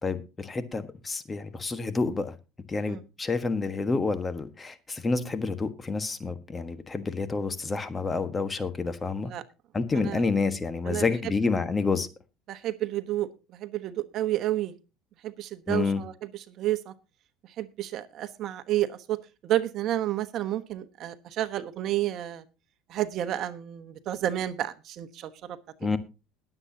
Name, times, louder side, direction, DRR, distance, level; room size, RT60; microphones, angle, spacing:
voice 1, 0.0-2.3 2.7-9.3 9.7-12.1 15.7-16.0 25.8-26.0, left 4 dB, 20° left, 10 dB, 1.3 m, -29 dB
voice 2, 12.5-14.7 15.2-16.1 16.5-16.9 17.6-19.2 19.4-22.4 22.9-25.6, right 13 dB, 55° right, 12 dB, 1.1 m, -30 dB
20.5 x 8.0 x 2.8 m, 0.29 s
supercardioid pair, 105°, 0 cm